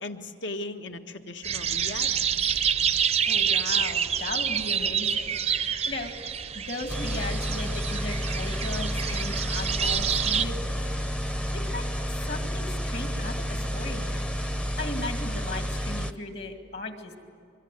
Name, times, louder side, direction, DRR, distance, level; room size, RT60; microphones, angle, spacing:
voice 1, 0.0-2.1, left 2 dB, 80° left, 5 dB, 1.5 m, -37 dB
sound 1, 1.4-10.4, right 7 dB, 35° right, 0.6 m, -27 dB
voice 2, 3.3-6.1 6.5-10.6 11.5-11.8 12.3-14.2 14.6-17.2, left 2 dB, 60° left, 5 dB, 2.3 m, -37 dB
sound 2, 6.9-16.1, equal, 5° left, 0.7 m, -30 dB
24.5 x 23.0 x 9.2 m, 2.3 s
head